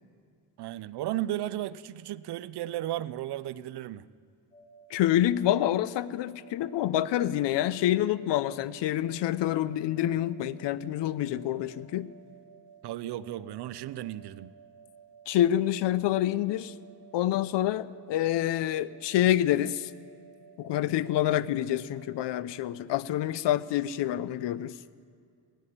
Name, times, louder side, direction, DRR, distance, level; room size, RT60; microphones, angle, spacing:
voice 1, 0.6-4.1 12.8-14.5, right 13 dB, 70° right, 17 dB, 0.6 m, -34 dB
sound 1, 4.5-23.1, right 7 dB, 15° left, 1.9 m, -55 dB
voice 2, 4.9-12.1 15.3-16.7 17.1-19.9 20.6-24.7, left 12 dB, 90° left, 17 dB, 0.6 m, -27 dB
15.5 x 9.2 x 10.0 m, 2.3 s
cardioid pair, 165°, 41 cm